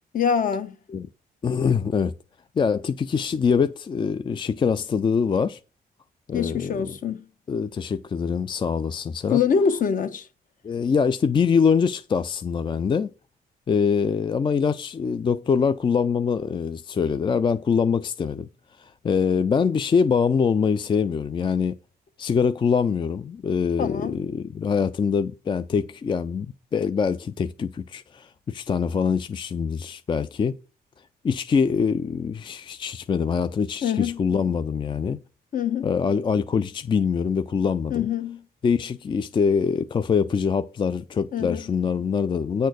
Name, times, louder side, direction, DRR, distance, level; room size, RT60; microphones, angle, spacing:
voice 1, 0.1-0.8 6.3-7.2 9.3-10.3 23.8-24.2 33.8-34.2 35.5-35.9 37.9-38.4 41.3-41.7, left 7 dB, 55° left, 1.1 m, -24 dB
voice 2, 1.4-2.1 2.6-5.6 6.3-6.9 7.5-9.4 10.6-13.1 13.7-18.5 18.8-21.7 22.2-30.6 31.2-35.2 35.8-38.1 38.6-42.7, left 6 dB, 30° left, 0.4 m, -24 dB
9.2 x 4.3 x 6.3 m
cardioid pair, 115°, 16 cm